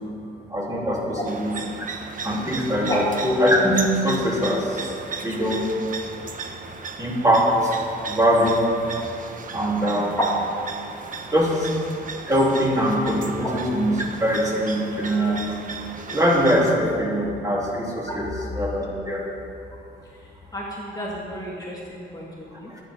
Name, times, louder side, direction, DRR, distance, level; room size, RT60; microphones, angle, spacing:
voice 1, 0.5-1.5 2.2-4.9 5.2-5.7 7.0-7.7 8.1-8.6 9.5-10.2 11.3-11.7 12.3-15.6 16.1-18.3 18.5-19.2 22.7-22.8, equal, 15° right, -4 dB, 3.7 m, -22 dB
sound 1, 1.3-16.7, right 4 dB, 45° right, 1.2 m, -36 dB
voice 2, 9.8-10.3 13.4-13.5 18.1-18.2 20.2-22.7, equal, 20° left, -4 dB, 2.2 m, -31 dB
23.5 x 9.2 x 3.9 m, 2.6 s
cardioid pair, 90°, 20 cm